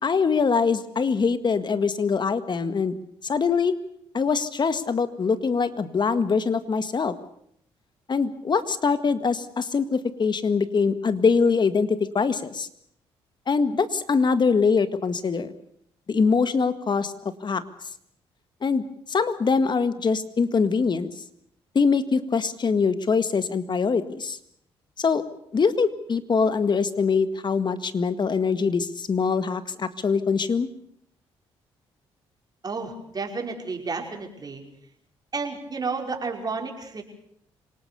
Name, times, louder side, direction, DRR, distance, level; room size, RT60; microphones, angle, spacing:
voice 1, 0.0-2.9 3.2-3.7 4.1-7.1 8.1-12.7 13.5-15.5 16.1-17.1 17.4-17.6 18.6-18.8 19.1-21.1 21.8-24.4 25.0-25.2 25.5-30.7, left 5 dB, 45° left, 12 dB, 1.8 m, -23 dB
voice 2, 32.6-34.6 35.3-37.0, right 4 dB, 35° right, 2 dB, 5.5 m, -31 dB
26.5 x 19.0 x 7.0 m, 0.69 s
cardioid pair, 70°, 11 cm